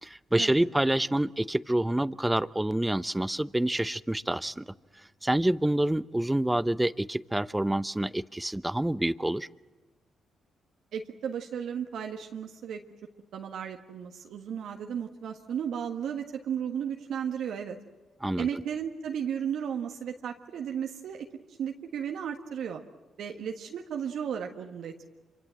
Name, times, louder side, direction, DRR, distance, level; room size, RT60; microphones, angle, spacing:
voice 1, 0.0-4.6 5.2-9.5 18.2-18.5, right 1 dB, 10° right, 17 dB, 0.8 m, -27 dB
voice 2, 10.9-12.8 13.3-17.8 18.4-21.3 21.6-22.8 23.2-25.1, right 8 dB, 70° right, 3 dB, 1.5 m, -34 dB
26.5 x 25.0 x 7.7 m, 1.2 s
hypercardioid pair, 45°, 0 cm